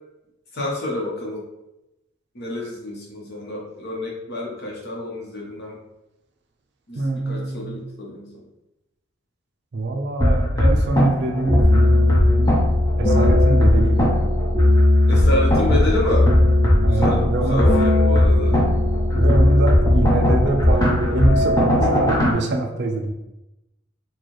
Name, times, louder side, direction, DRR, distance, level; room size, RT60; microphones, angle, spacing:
voice 1, 0.5-1.5 2.3-5.8 6.9-8.4 15.1-16.3 16.8-18.6, left 2 dB, 50° left, -3 dB, 0.9 m, -28 dB
voice 2, 7.0-7.8 9.7-12.5 13.0-14.4 16.8-17.7 19.1-23.1, right 2 dB, 55° right, 3 dB, 0.5 m, -24 dB
sound 1, 10.2-22.3, left 1 dB, 15° left, 0.6 m, -17 dB
4.3 x 2.3 x 3.1 m, 0.93 s
head